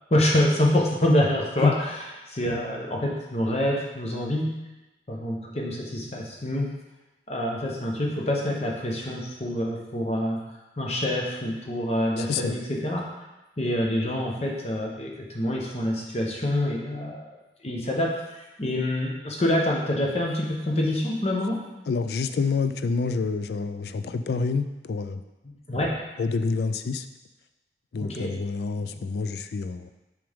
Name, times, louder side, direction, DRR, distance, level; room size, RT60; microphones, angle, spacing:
voice 1, 0.1-1.9 2.3-4.6 5.1-6.7 7.3-10.4 10.8-13.0 13.6-17.3 17.6-21.6 25.7-26.0 28.0-28.3, left 1 dB, 35° left, -2 dB, 1.0 m, -26 dB
voice 2, 12.2-12.6 21.9-25.2 26.2-27.1 27.9-29.9, left 4 dB, 65° left, 10 dB, 0.3 m, -27 dB
6.0 x 4.9 x 3.6 m, 1.0 s
head